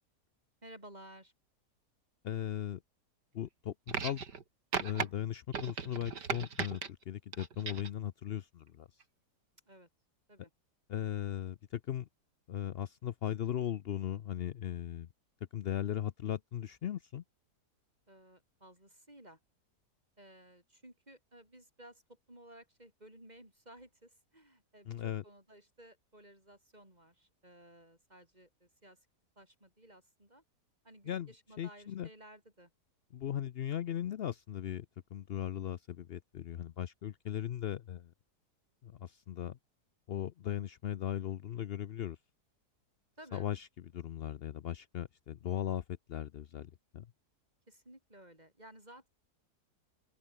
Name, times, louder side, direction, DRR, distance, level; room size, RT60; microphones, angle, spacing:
voice 1, 0.6-1.3 9.7-9.9 10.3-10.5 18.1-19.4 20.2-29.1 29.4-30.4 30.8-32.7 43.2-43.5 47.7-49.1, right 1 dB, 25° right, 7.5 m, -56 dB
voice 2, 2.2-2.8 3.3-4.2 4.8-8.9 10.9-12.1 12.5-15.1 15.5-17.2 24.9-25.2 31.1-31.3 31.6-32.1 33.1-34.9 35.1-38.1 38.8-39.6 40.1-42.2 43.3-43.7 43.9-45.8 46.1-47.1, left 10 dB, 85° left, 0.5 m, -38 dB
sound 1, 3.9-4.4 4.7-5.1 5.5-6.9 7.3-8.0 9.0-9.1, right 6 dB, 90° right, 2.9 m, -37 dB
open air
omnidirectional pair, 1.8 m